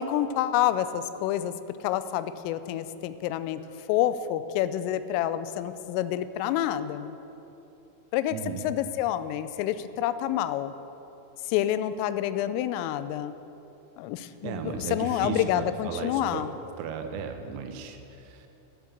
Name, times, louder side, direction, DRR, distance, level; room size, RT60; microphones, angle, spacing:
voice 1, 0.0-1.5 1.8-3.6 3.9-7.2 8.1-8.4 8.6-10.7 11.4-13.3 14.0-16.5, left 12 dB, 85° left, 13 dB, 3.2 m, -28 dB
voice 2, 8.3-8.7 14.4-16.5 16.8-18.5, right 6 dB, 90° right, 6 dB, 3.6 m, -35 dB
12.0 x 11.0 x 7.3 m, 2.9 s
omnidirectional pair, 5.7 m